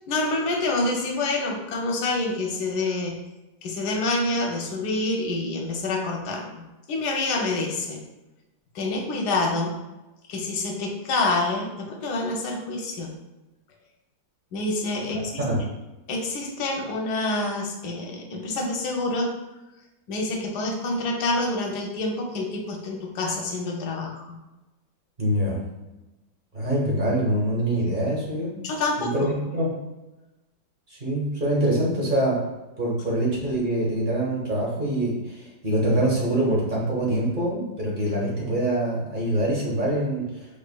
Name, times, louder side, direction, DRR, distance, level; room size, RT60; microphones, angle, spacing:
voice 1, 0.1-3.2 3.6-6.6 6.9-8.0 8.7-9.8 10.3-13.1 14.5-15.5 16.1-19.3 20.1-24.4 28.6-29.3, left 2 dB, 65° left, 1 dB, 1.2 m, -27 dB
voice 2, 25.2-25.6 26.5-28.6 29.0-29.8 30.9-32.4 32.8-40.6, right 1 dB, 35° right, -4 dB, 1.0 m, -25 dB
5.1 x 3.3 x 2.2 m, 1.0 s
omnidirectional pair, 2.1 m